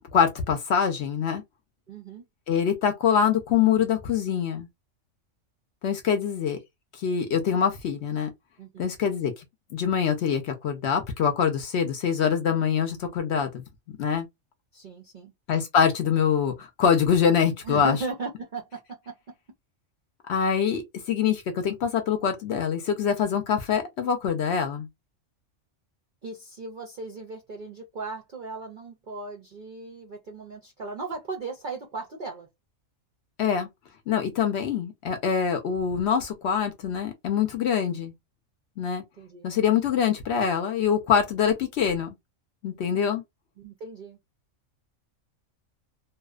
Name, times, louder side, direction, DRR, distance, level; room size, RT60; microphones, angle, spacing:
voice 1, 0.1-1.4 2.5-4.7 5.8-6.6 7.0-8.3 8.8-9.4 9.7-13.6 14.0-14.3 15.5-18.0 20.3-24.9 33.4-33.7 34.1-38.1 38.8-39.0 39.4-42.2 42.6-43.2, left 7 dB, 65° left, 0.7 m, -24 dB
voice 2, 1.9-2.3 8.6-8.9 14.7-15.3 17.6-19.3 26.2-32.5 39.2-39.6 43.6-44.2, right 3 dB, 60° right, 0.5 m, -37 dB
2.7 x 2.0 x 2.3 m
omnidirectional pair, 1.4 m